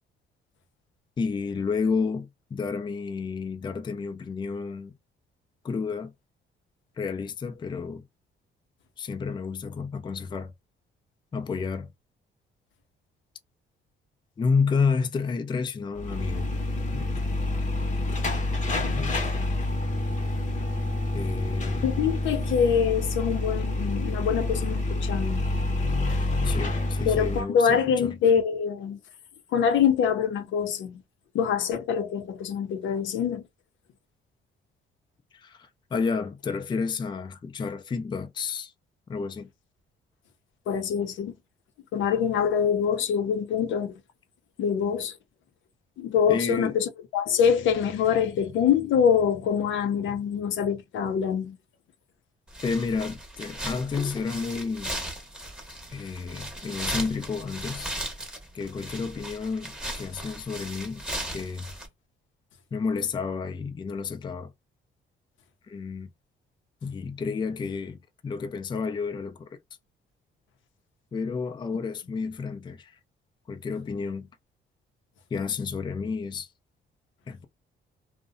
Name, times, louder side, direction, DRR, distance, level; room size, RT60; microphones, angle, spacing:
voice 1, 1.2-4.9 5.6-6.1 7.0-8.0 9.0-10.5 11.3-11.9 14.4-16.5 16.9-17.3 18.9-19.2 21.1-22.0 26.4-28.2 35.3-38.7 39.1-39.5 46.3-46.8 52.6-55.0 55.9-57.9 58.5-61.1 61.3-61.7 62.7-64.5 65.7-66.1 66.8-69.6 71.1-73.0 73.5-74.3 75.3-76.5 77.3-77.5, left 5 dB, 25° left, 0.3 m, -30 dB
sound 1, 16.0-27.4, left 1 dB, 40° left, 0.8 m, -28 dB
voice 2, 21.8-25.4 27.1-29.0 29.5-31.0 31.3-33.4 40.7-41.3 41.9-43.9 44.6-45.1 46.0-51.6, left 7 dB, 75° left, 0.5 m, -25 dB
sound 2, 52.5-61.9, right 1 dB, 5° right, 0.8 m, -37 dB
2.6 x 2.0 x 2.5 m
cardioid pair, 90°, 20 cm